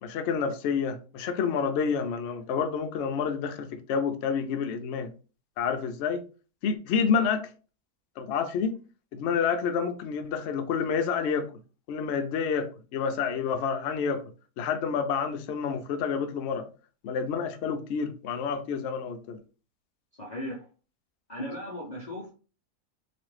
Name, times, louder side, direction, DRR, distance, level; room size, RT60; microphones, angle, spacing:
voice 1, 0.0-5.1 5.6-6.3 6.6-7.5 8.2-8.7 9.1-11.5 11.9-14.3 14.6-16.7 17.0-19.4, left 6 dB, 90° left, 0.6 m, -29 dB
voice 2, 20.2-20.7 21.3-22.3, left 1 dB, 40° left, 0.6 m, -36 dB
3.0 x 2.4 x 3.1 m
omnidirectional pair, 1.7 m